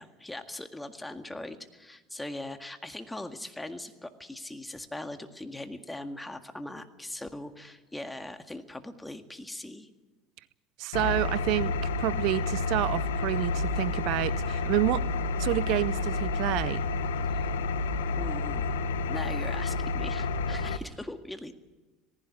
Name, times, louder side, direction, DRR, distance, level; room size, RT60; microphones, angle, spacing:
voice 1, 0.0-9.9 17.3-17.5 18.2-21.5, left 1 dB, 10° left, 7 dB, 1.9 m, -40 dB
voice 2, 10.8-15.0 15.4-16.8, right 18 dB, 65° right, 19 dB, 0.6 m, -29 dB
Engine, 10.9-20.8, left 3 dB, 90° left, 0.9 m, -30 dB
18.5 x 16.0 x 9.7 m, 1.2 s
hypercardioid pair, 80°, 0 cm